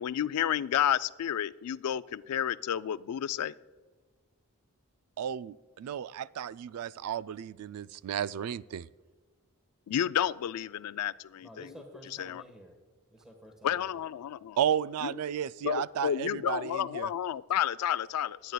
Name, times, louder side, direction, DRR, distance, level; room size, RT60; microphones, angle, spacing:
voice 1, 0.0-3.5 9.9-11.7 12.2-12.4 13.6-14.6 15.0-15.1 15.6-18.5, left 10 dB, 80° left, 17 dB, 0.3 m, -31 dB
voice 2, 5.2-8.9 14.6-17.1, right 9 dB, 70° right, 17 dB, 0.3 m, -33 dB
voice 3, 11.4-12.8 13.1-14.0, equal, 5° right, 2 dB, 1.3 m, -51 dB
21.5 x 9.4 x 2.3 m, 1.4 s
head